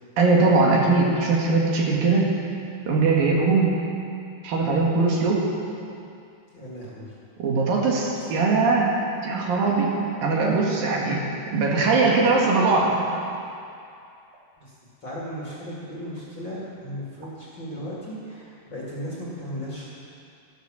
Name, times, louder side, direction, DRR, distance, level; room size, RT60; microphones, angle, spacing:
voice 1, 0.2-2.3 2.9-3.7 4.4-5.5 7.4-8.9 9.2-9.9 10.2-11.2 11.5-13.0, right 3 dB, 65° right, -3 dB, 3.3 m, -20 dB
voice 2, 6.5-7.1 8.1-8.2 14.6-14.7 15.0-19.9, equal, 35° left, -6 dB, 2.4 m, -36 dB
13.5 x 13.0 x 6.2 m, 2.5 s
omnidirectional pair, 4.5 m